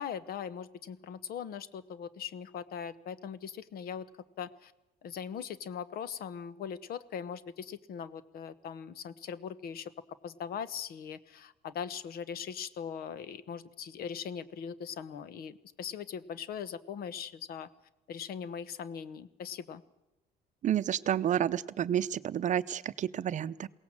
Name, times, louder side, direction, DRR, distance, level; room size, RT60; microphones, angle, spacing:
voice 1, 0.0-4.1 4.4-4.7 5.0-9.9 10.2-17.7 18.1-19.8, left 7 dB, 65° left, 15 dB, 1.2 m, -40 dB
voice 2, 20.6-23.7, right 10 dB, 45° right, 15 dB, 0.7 m, -30 dB
22.0 x 17.5 x 7.5 m, 0.95 s
cardioid pair, 110°, 17 cm